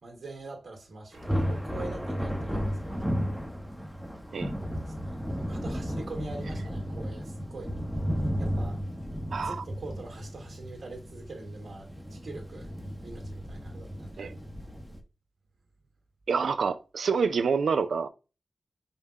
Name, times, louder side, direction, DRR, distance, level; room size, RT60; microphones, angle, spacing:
voice 1, 0.0-3.0 4.9-5.2 5.4-7.7 8.4-8.8 9.4-12.7 13.0-14.2, right 3 dB, 70° right, 1.6 m, -43 dB
Thunder, 1.1-15.0, equal, ahead, 0.7 m, -34 dB
voice 2, 9.3-9.6 14.2-14.3 16.3-18.1, right 5 dB, 90° right, 0.4 m, -27 dB
5.4 x 2.2 x 4.5 m
wide cardioid pair, 100°, 0 cm